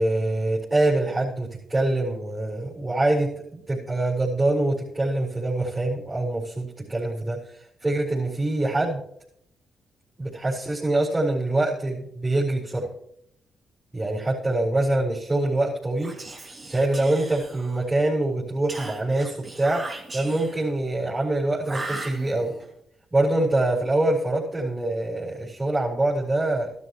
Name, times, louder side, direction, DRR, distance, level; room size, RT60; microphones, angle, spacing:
voice 1, 0.0-9.0 10.2-12.9 13.9-16.1 16.7-22.5 23.1-26.7, right 2 dB, 25° right, -6 dB, 4.7 m, -25 dB
Whispering, 16.0-17.9 18.7-20.7 21.6-22.7, right 2 dB, 40° right, 2.8 m, -38 dB
15.0 x 12.5 x 3.2 m, 0.71 s
cardioid pair, 70°, 0 cm